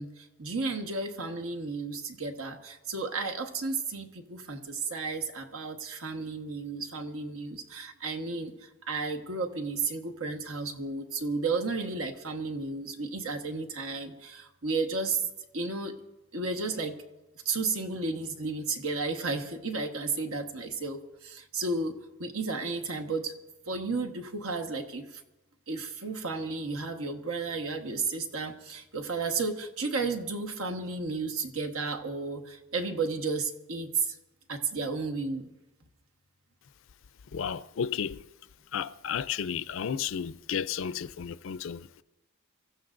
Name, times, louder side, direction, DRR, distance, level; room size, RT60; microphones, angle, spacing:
voice 1, 0.0-15.3 15.5-15.9 16.3-17.0 17.4-21.9 22.2-23.3 23.7-25.2 25.7-34.2 34.5-35.5, right 3 dB, 85° right, 1.3 m, -33 dB
voice 2, 37.3-38.2 38.7-41.9, left 7 dB, 65° left, 0.4 m, -33 dB
26.0 x 14.5 x 2.5 m
head